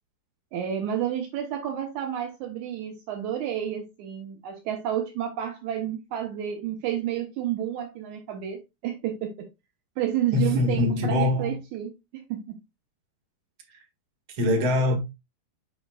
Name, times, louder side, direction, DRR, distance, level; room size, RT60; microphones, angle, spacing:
voice 1, 0.5-9.5 10.0-12.6, right 10 dB, 85° right, 1.7 m, -30 dB
voice 2, 10.3-11.6 14.4-15.0, left 2 dB, 45° right, 1.9 m, -23 dB
7.8 x 6.0 x 2.3 m
omnidirectional pair, 4.8 m